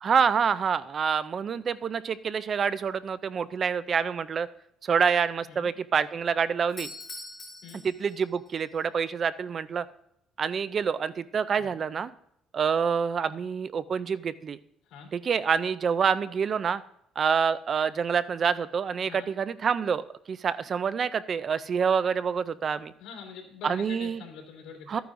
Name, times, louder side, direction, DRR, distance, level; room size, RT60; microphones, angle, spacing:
voice 1, 0.0-4.5 4.8-6.9 7.8-9.9 10.4-12.1 12.5-14.6 15.1-16.8 17.2-22.9 23.6-24.2 24.9-25.0, right 6 dB, 35° right, 16 dB, 0.3 m, -27 dB
Doorbell, 6.6-8.6, left 2 dB, 25° left, 2.8 m, -43 dB
voice 2, 14.8-15.2 19.0-19.3 23.0-25.0, left 6 dB, 80° left, 0 dB, 3.1 m, -44 dB
13.0 x 9.3 x 2.5 m, 0.75 s
cardioid pair, 145°, 0 cm